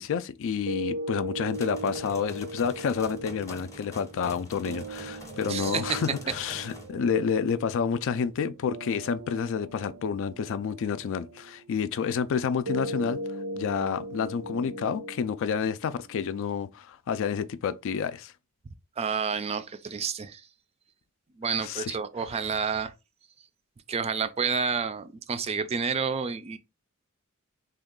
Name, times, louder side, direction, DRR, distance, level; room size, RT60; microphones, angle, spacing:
voice 1, 0.0-13.2 13.6-18.3 21.6-22.0, left 6 dB, 60° left, 0.3 m, -29 dB
sound 1, 0.7-16.7, right 1 dB, 75° right, 0.6 m, -39 dB
sound 2, 1.5-6.9, left 2 dB, 15° left, 0.8 m, -44 dB
voice 2, 5.5-6.0 19.0-20.4 21.4-22.9 23.9-26.6, right 6 dB, 30° right, 0.3 m, -29 dB
3.5 x 2.3 x 3.6 m
head